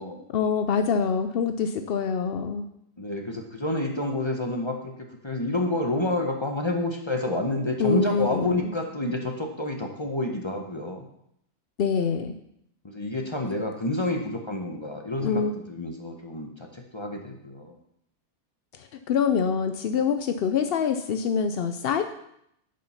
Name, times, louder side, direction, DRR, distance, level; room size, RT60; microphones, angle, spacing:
voice 1, 0.3-2.7 7.8-8.7 11.8-12.3 15.2-15.5 18.8-22.0, left 6 dB, 75° left, 8 dB, 0.5 m, -25 dB
voice 2, 3.0-4.9 5.2-11.1 12.8-15.4 15.7-17.8, left 2 dB, 25° left, 2 dB, 0.7 m, -29 dB
6.8 x 6.4 x 5.7 m, 0.75 s
omnidirectional pair, 1.6 m